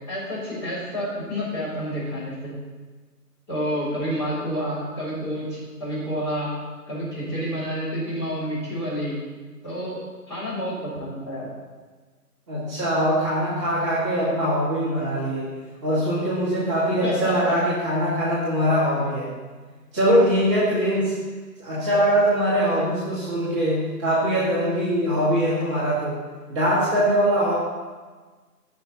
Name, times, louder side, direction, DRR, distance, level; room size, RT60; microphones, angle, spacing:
voice 1, 0.0-2.5 3.5-6.5 6.9-9.2 9.6-10.0 10.3-11.5 17.0-17.6, equal, 10° left, -10 dB, 3.8 m, -29 dB
voice 2, 12.5-15.5 15.8-19.3 19.9-21.1 21.6-26.2 26.5-27.5, equal, 20° right, -11 dB, 2.6 m, -22 dB
16.0 x 6.7 x 4.1 m, 1.4 s
figure-of-eight pair, 160°, 48 cm